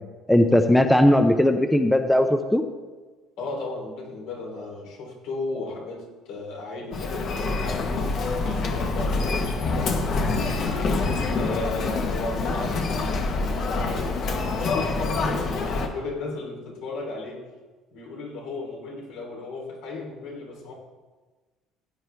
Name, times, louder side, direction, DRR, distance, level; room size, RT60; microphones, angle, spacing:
voice 1, 0.3-2.6, left 1 dB, 5° left, 7 dB, 0.5 m, -18 dB
voice 2, 3.4-8.1 8.4-10.6 11.3-13.0 13.4-17.5 17.9-20.7, left 3 dB, 75° left, -1 dB, 3.4 m, -35 dB
Human voice, 6.9-15.9, left 3 dB, 45° left, 1.2 m, -26 dB
15.0 x 9.3 x 3.4 m, 1.3 s
cardioid pair, 150°, 0 cm